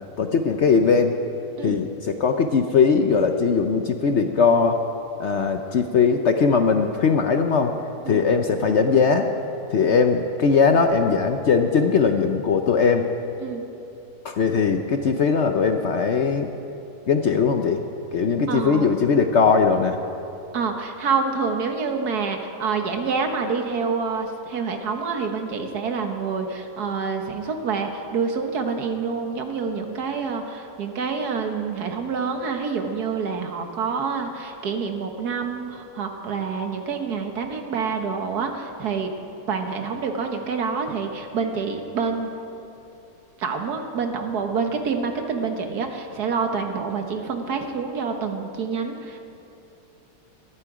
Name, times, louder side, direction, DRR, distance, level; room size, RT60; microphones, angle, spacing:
voice 1, 0.2-1.2 1.6-4.8 5.2-7.7 8.0-9.3 9.7-13.1 14.2-16.5 17.1-17.8 18.1-20.0, left 5 dB, 55° left, 6 dB, 0.8 m, -20 dB
voice 2, 18.5-18.9 20.5-39.1 39.5-42.3 43.4-49.2, right 5 dB, 70° right, 5 dB, 1.7 m, -27 dB
20.0 x 13.0 x 4.9 m, 2.9 s
omnidirectional pair, 1.7 m